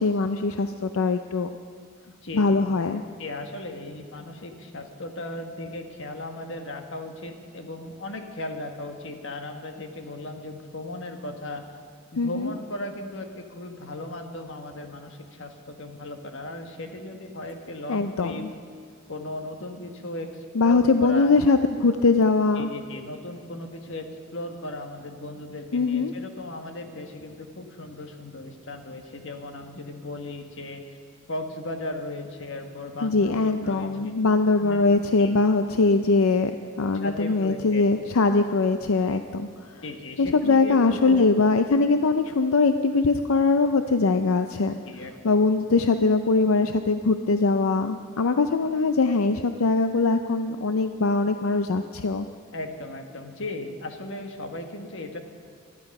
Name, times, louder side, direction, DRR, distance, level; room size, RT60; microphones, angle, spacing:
voice 1, 0.0-1.5 2.3-3.0 12.2-12.5 17.9-18.4 20.5-22.7 25.7-26.1 33.0-36.5 36.8-39.5 40.2-44.8 45.2-52.3, left 3 dB, 85° left, 8 dB, 0.6 m, -22 dB
voice 2, 2.2-2.6 3.2-11.7 12.1-18.5 19.1-21.3 22.5-31.0 31.3-34.2 34.6-34.8 35.2-35.4 37.0-37.9 39.1-39.2 39.8-41.3 41.9-42.0 44.8-45.4 52.5-55.2, left 2 dB, 60° left, 5 dB, 1.5 m, -36 dB
20.0 x 13.0 x 5.4 m, 2.1 s
head